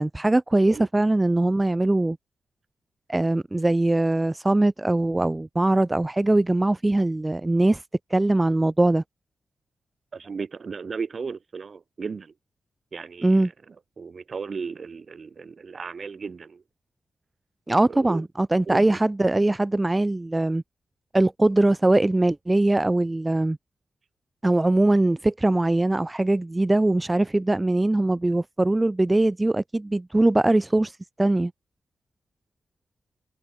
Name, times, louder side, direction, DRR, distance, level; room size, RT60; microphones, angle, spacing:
voice 1, 0.0-2.2 3.1-7.8 8.1-9.0 13.2-13.5 17.7-20.6 21.1-23.6 24.4-31.5, right 2 dB, 20° right, 1.8 m, -21 dB
voice 2, 10.1-12.3 12.9-13.5 14.0-16.6 17.9-18.2 18.7-19.0, right 5 dB, 50° right, 7.1 m, -35 dB
cardioid pair, 65°, 0 cm